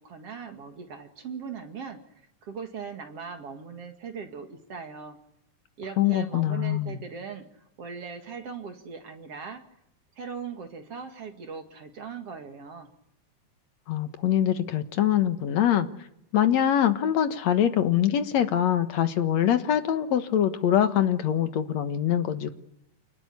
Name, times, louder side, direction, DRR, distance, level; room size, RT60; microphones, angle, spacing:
voice 1, 0.0-2.0 2.4-5.2 5.8-9.6 10.2-12.9, right 6 dB, 50° right, 5 dB, 2.8 m, -39 dB
voice 2, 6.0-7.0 13.9-15.9 16.3-22.5, left 10 dB, 65° left, 9 dB, 2.4 m, -24 dB
28.5 x 19.5 x 9.9 m, 0.83 s
omnidirectional pair, 3.7 m